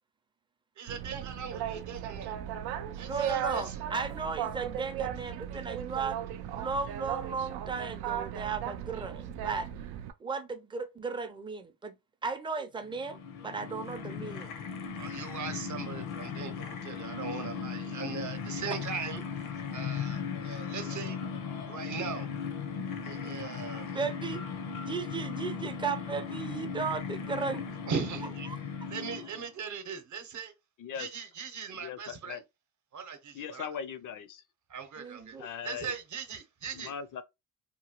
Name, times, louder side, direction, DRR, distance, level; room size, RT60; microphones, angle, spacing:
voice 1, 0.8-2.4 3.0-3.7 15.0-19.2 19.7-21.2 21.7-22.3 23.0-24.0 27.9-28.5 28.9-30.5 30.9-32.4 32.9-33.7 34.7-35.4 35.6-36.9, right 6 dB, 50° right, 0.8 m, -39 dB
Boat Water vehicle, 0.9-10.1, right 10 dB, 85° right, 0.5 m, -37 dB
voice 2, 3.1-6.2 6.5-9.7 10.2-12.0 12.2-14.5 23.1-23.4 23.9-24.4 24.9-27.6 28.5-28.6 35.0-35.5, right 5 dB, 15° right, 0.4 m, -35 dB
sound 1, 12.9-29.5, left 6 dB, 90° left, 0.8 m, -37 dB
voice 3, 31.7-32.4 33.3-34.4 35.4-35.9 36.7-37.2, left 7 dB, 55° left, 0.5 m, -39 dB
2.9 x 2.2 x 2.8 m
cardioid pair, 100°, 37 cm